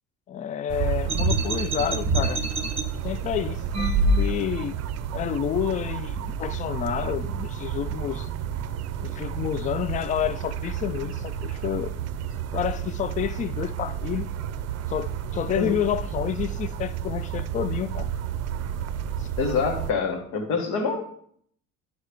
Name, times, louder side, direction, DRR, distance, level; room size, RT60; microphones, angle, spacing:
voice 1, 0.3-2.4 3.0-4.8 5.1-8.3 9.0-11.9 12.5-14.3 14.9-18.1 19.2-19.3, left 10 dB, 20° left, 0.3 m, -29 dB
sound 1, 0.7-19.9, right 9 dB, 45° right, 0.6 m, -31 dB
sound 2, 1.1-2.8 3.7-4.7, right 1 dB, 15° right, 1.0 m, -24 dB
voice 2, 19.4-21.0, left 5 dB, 65° left, 1.5 m, -26 dB
10.5 x 3.8 x 3.4 m
hypercardioid pair, 60°, 37 cm